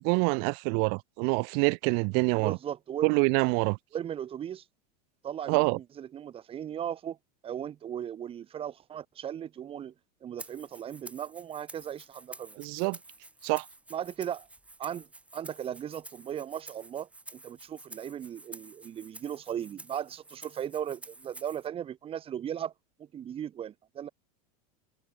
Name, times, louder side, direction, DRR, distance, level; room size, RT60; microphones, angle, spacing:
voice 1, 0.0-2.6 3.0-3.8 5.5-5.8 12.6-13.0 13.4-13.7, right 39 dB, 50° right, 0.6 m, -26 dB
voice 2, 2.4-3.1 3.9-4.6 5.2-7.2 7.4-9.9 10.2-12.6 13.9-14.5 14.8-15.1 15.3-22.7 23.0-24.1, right 9 dB, 25° right, 4.0 m, -37 dB
Rattle (instrument), 10.4-21.7, right 2 dB, 5° right, 3.5 m, -50 dB
supercardioid pair, 150°, 21 cm